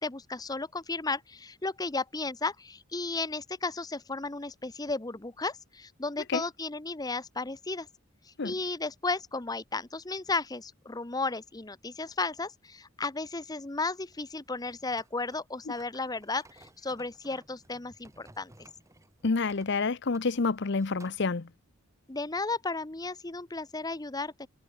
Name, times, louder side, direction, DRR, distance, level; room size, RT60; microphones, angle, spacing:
voice 1, 0.0-7.9 8.2-18.7 22.1-24.5, left 3 dB, 20° left, 0.8 m, -34 dB
sound 1, 14.0-21.3, right 2 dB, 15° right, 2.1 m, -58 dB
voice 2, 19.2-21.5, left 4 dB, 55° left, 0.7 m, -28 dB
head